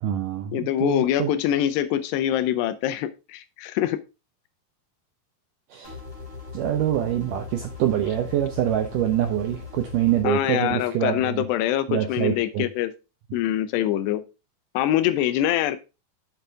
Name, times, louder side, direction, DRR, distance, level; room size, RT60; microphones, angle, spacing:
voice 1, 0.0-1.3 5.7-5.9 6.5-11.4 11.9-12.6, right 11 dB, 80° right, 6 dB, 1.9 m, -25 dB
voice 2, 0.5-4.0 10.2-12.9 13.3-14.2 14.7-15.8, left 12 dB, 85° left, 13 dB, 2.9 m, -24 dB
sound 1, 5.8-10.2, left 5 dB, 10° left, 2.8 m, -39 dB
7.9 x 6.8 x 3.5 m, 0.29 s
omnidirectional pair, 4.8 m